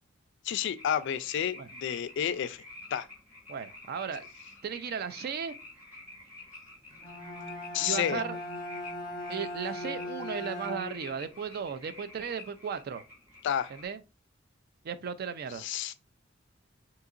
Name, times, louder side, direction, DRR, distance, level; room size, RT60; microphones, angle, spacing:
voice 1, 0.4-2.6 2.9-3.1 7.7-8.2 13.4-13.7 15.6-15.9, left 9 dB, 60° left, 0.3 m, -30 dB
sound 1, 0.8-13.9, left 2 dB, 10° right, 1.7 m, -50 dB
voice 2, 3.5-4.3 4.6-5.5 7.8-8.4 9.3-13.0 13.7-14.0 14.8-15.7, right 6 dB, 50° right, 0.3 m, -36 dB
Bowed string instrument, 6.9-11.2, left 1 dB, 20° left, 0.7 m, -39 dB
3.7 x 2.8 x 2.4 m
head